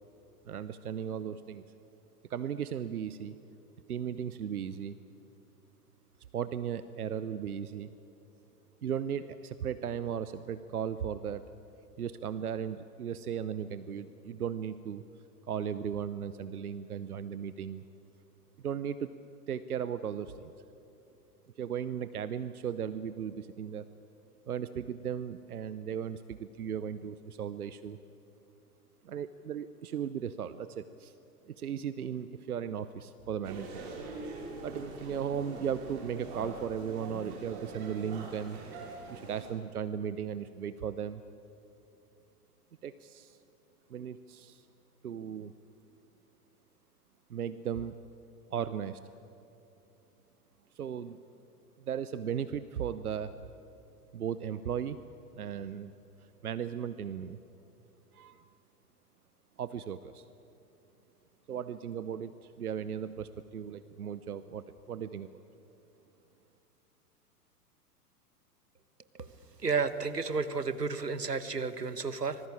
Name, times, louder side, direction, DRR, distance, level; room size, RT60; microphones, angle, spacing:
voice 1, 0.4-1.6 2.3-3.4 3.9-5.0 6.3-7.9 8.8-11.5 12.0-15.0 15.5-17.8 18.6-19.1 19.5-20.5 21.6-23.9 24.5-28.0 29.0-31.1 31.5-33.9 34.6-38.6 39.1-41.2 42.8-43.4 43.9-44.6 45.0-45.5 47.3-48.0 48.5-49.0 50.7-51.2 51.8-53.4 54.1-55.0 55.3-55.9 56.2-57.4 58.1-58.4 59.6-60.2 61.5-65.4, right 8 dB, 70° right, 14 dB, 0.9 m, -36 dB
sound 1, 33.4-39.5, right 2 dB, 45° right, 5.5 m, -43 dB
voice 2, 69.6-72.4, right 4 dB, 85° right, 13 dB, 1.3 m, -32 dB
25.5 x 20.0 x 8.6 m, 2.8 s
figure-of-eight pair, 105°, 47 cm